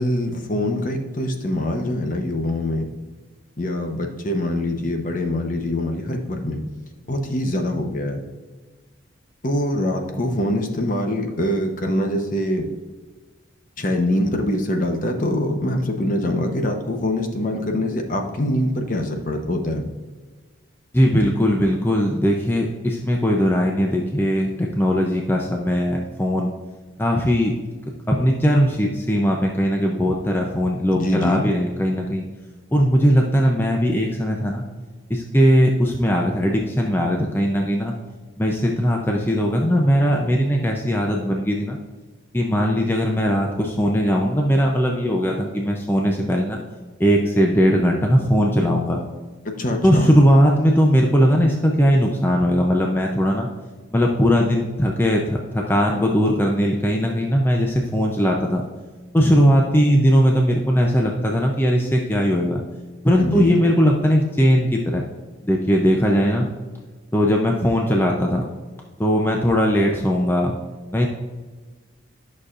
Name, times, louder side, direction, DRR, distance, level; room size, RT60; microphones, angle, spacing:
voice 1, 0.0-2.9 3.6-6.6 7.1-8.2 9.4-12.7 13.8-19.8 30.9-31.5 49.4-50.1 63.2-63.6, left 1 dB, 40° left, 4 dB, 0.9 m, -24 dB
voice 2, 20.9-26.5 27.0-27.5 28.1-32.3 32.7-34.7 35.1-38.0 38.4-41.8 42.3-46.6 47.0-49.0 49.8-53.5 53.9-58.6 59.1-62.6 63.0-65.0 65.4-66.5 67.1-68.5 69.0-70.6 70.9-71.1, equal, 10° left, 0 dB, 0.5 m, -19 dB
11.0 x 6.4 x 2.5 m, 1.3 s
head